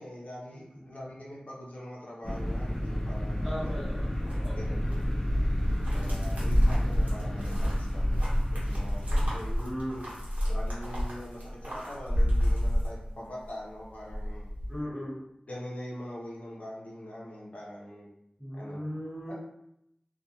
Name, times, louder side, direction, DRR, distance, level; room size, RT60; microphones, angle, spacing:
voice 1, 0.0-4.0 4.5-5.3 5.9-9.5 10.5-14.5 15.5-18.1 18.5-18.8 19.3-19.4, left 1 dB, 65° left, -5 dB, 0.7 m, -43 dB
sound 1, 2.2-10.4, equal, 20° left, 0.5 m, -32 dB
voice 2, 3.4-4.6 9.2-10.2 14.7-15.2 18.4-19.3, equal, 15° right, -9 dB, 1.2 m, -38 dB
sound 2, 3.6-13.5 13.8-14.7, equal, 70° right, 0.9 m, -29 dB
2.3 x 2.2 x 2.8 m, 0.79 s
wide cardioid pair, 70°, 3 cm